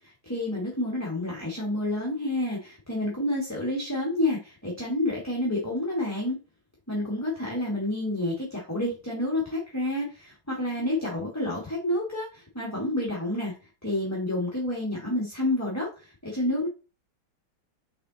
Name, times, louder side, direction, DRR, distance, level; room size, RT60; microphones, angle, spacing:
voice 1, 0.2-6.4 6.9-13.5 13.8-16.7, left 1 dB, 10° left, -4 dB, 1.4 m, -29 dB
6.7 x 3.6 x 3.9 m, 0.33 s
omnidirectional pair, 2.3 m